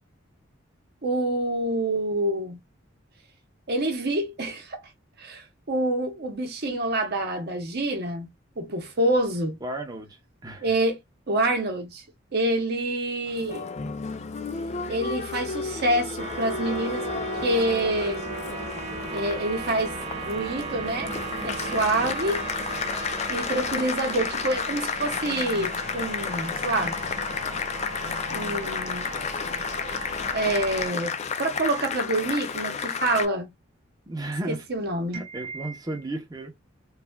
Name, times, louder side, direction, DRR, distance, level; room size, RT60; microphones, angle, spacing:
voice 1, 1.0-2.6 3.7-4.8 5.2-8.3 8.6-9.6 10.6-11.0 11.3-12.0 12.3-13.7 14.9-18.2 19.1-21.1 21.4-22.4 23.3-27.0 28.3-29.2 30.3-31.1 31.4-33.5 34.5-35.7, right 1 dB, 55° right, 0.9 m, -27 dB
voice 2, 9.6-10.1 10.4-10.8 34.1-34.6 35.1-36.5, right 2 dB, 20° right, 0.8 m, -33 dB
Applause, 13.3-33.3, left 5 dB, 35° left, 0.4 m, -32 dB
sound 1, 16.2-30.9, right 2 dB, 35° right, 1.1 m, -35 dB
3.2 x 2.4 x 2.2 m
head